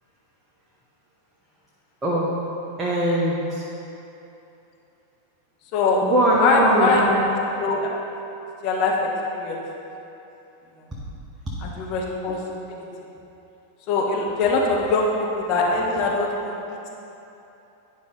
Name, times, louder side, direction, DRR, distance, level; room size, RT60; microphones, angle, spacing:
voice 1, 2.0-2.4 2.8-3.6 6.0-7.3, right 1 dB, 20° right, -6 dB, 1.0 m, -21 dB
voice 2, 6.4-7.0 7.6-7.9 8.6-8.9 9.3-9.6 11.6-12.4 12.7-12.8 13.9-15.1 15.3-16.5, left 3 dB, 40° left, -2 dB, 1.2 m, -22 dB
10.0 x 5.4 x 3.8 m, 2.9 s
figure-of-eight pair, 90°, 0 cm